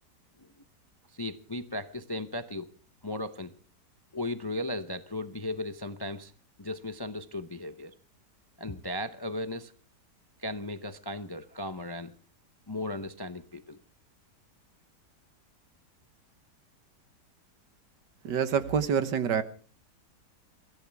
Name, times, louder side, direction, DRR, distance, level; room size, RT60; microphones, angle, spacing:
voice 1, 1.1-2.7 3.0-3.5 4.1-6.3 6.6-7.9 8.6-9.7 10.4-12.1 12.7-13.8, left 1 dB, 30° left, 9 dB, 0.4 m, -36 dB
voice 2, 18.2-19.4, right 7 dB, 85° right, 11 dB, 1.8 m, -26 dB
24.0 x 15.5 x 3.5 m, 0.39 s
omnidirectional pair, 1.8 m